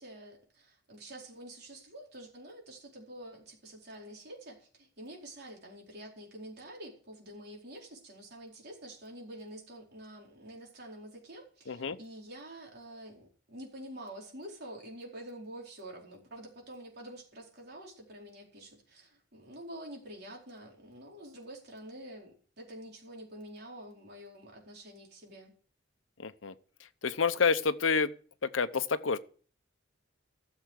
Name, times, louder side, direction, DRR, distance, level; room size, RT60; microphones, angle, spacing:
voice 1, 0.0-25.5, right 1 dB, 55° right, 4.4 m, -47 dB
voice 2, 11.7-12.0 26.2-26.5 26.8-28.1 28.4-29.2, left 5 dB, 90° left, 0.8 m, -29 dB
14.0 x 7.1 x 6.4 m
head